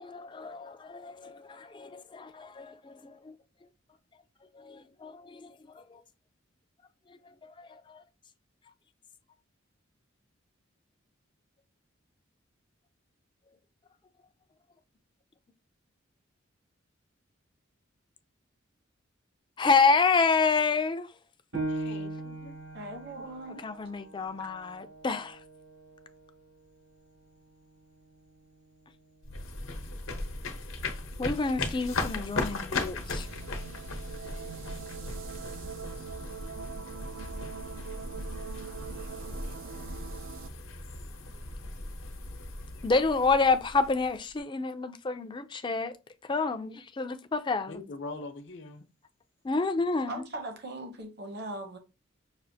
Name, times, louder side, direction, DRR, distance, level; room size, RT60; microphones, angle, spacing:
voice 1, 0.0-3.3 4.5-6.0 7.3-8.0 19.6-21.1 23.6-25.4 31.2-33.3 42.8-46.0 46.3-47.8 49.4-50.2, left 4 dB, 25° left, 0.4 m, -29 dB
Piano, 21.5-26.7 27.2-27.3 27.9-28.4, right 2 dB, 85° right, 2.6 m, -40 dB
voice 2, 21.7-22.6 34.1-34.9 47.7-48.8, left 3 dB, 60° left, 0.7 m, -44 dB
voice 3, 22.7-23.6 24.4-24.5 50.1-51.8, right 1 dB, 55° right, 0.9 m, -39 dB
sound 1, 29.2-44.4, left 2 dB, 85° left, 0.9 m, -37 dB
sound 2, 33.0-40.5, right 7 dB, 70° right, 0.4 m, -43 dB
6.0 x 2.5 x 2.7 m
head